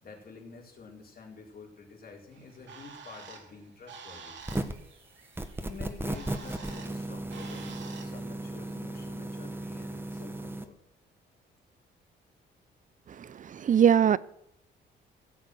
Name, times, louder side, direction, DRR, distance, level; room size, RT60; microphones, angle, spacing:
voice 1, 0.0-4.4 5.6-10.8, left 4 dB, 50° left, 4.3 m, -48 dB
Bird, 2.3-8.2, right 5 dB, 65° right, 2.5 m, -49 dB
sound 1, 4.4-4.9 5.4-10.6, right 1 dB, 10° right, 1.5 m, -36 dB
voice 2, 13.2-14.2, right 8 dB, 40° right, 0.6 m, -22 dB
16.5 x 7.6 x 6.1 m
cardioid pair, 90°, 20 cm